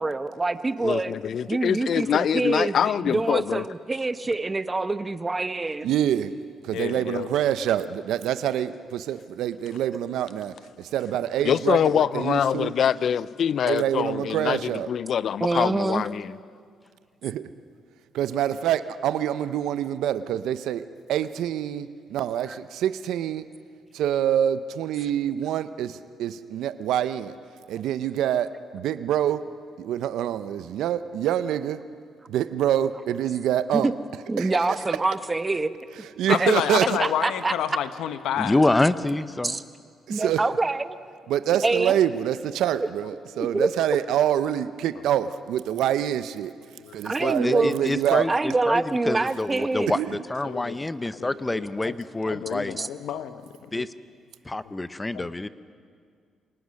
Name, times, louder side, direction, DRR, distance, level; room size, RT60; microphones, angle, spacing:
voice 1, 0.0-1.1 1.5-5.9 15.4-16.1 33.7-33.9 34.3-35.7 36.3-36.5 37.0-37.5 39.4-39.6 40.1-41.0 41.6-42.0 43.5-43.7 47.0-47.8 48.3-49.9 52.8-52.9, right 3 dB, 25° right, 0.9 m, -25 dB
voice 2, 0.8-3.6 11.4-16.4, left 8 dB, 60° left, 0.4 m, -24 dB
voice 3, 5.8-6.3 6.6-12.7 13.7-14.9 17.2-17.4 18.1-23.4 23.9-27.4 27.7-29.4 29.8-31.8 32.3-33.9 34.4-34.5 36.2-37.0 40.1-40.4 41.3-46.5 46.9-48.3 49.9-50.2, right 10 dB, 85° right, 0.6 m, -26 dB
voice 4, 6.7-7.3 36.3-38.6 46.8-47.0 50.4-50.8 51.1-51.9 52.2-53.4 53.7-53.8 55.1-55.3, left 10 dB, 80° left, 1.0 m, -29 dB
voice 5, 38.4-39.6 47.2-48.3 48.7-50.0 50.3-52.8 53.7-53.9 54.5-55.5, left 2 dB, 15° left, 0.8 m, -26 dB
26.5 x 19.0 x 6.5 m
cardioid pair, 90°, 0 cm